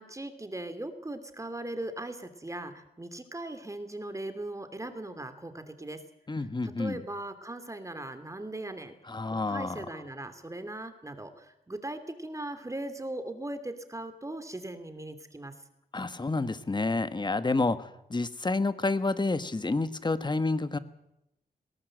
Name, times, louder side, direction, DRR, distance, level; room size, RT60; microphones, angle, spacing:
voice 1, 0.0-6.0 6.6-8.9 9.3-15.5, right 1 dB, 20° right, 9 dB, 2.6 m, -39 dB
voice 2, 6.3-7.0 9.1-9.8 15.9-20.8, left 3 dB, 30° left, 13 dB, 1.3 m, -29 dB
20.0 x 17.5 x 7.8 m, 0.83 s
wide cardioid pair, 85°, 16 cm